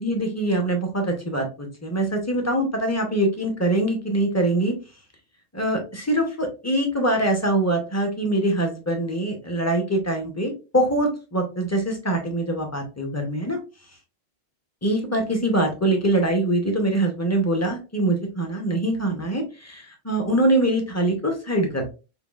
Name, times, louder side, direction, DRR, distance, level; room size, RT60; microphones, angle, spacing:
voice 1, 0.0-4.8 5.5-13.6 14.8-21.9, right 1 dB, 15° left, 3 dB, 0.6 m, -23 dB
5.5 x 2.2 x 2.3 m, 0.31 s
omnidirectional pair, 1.3 m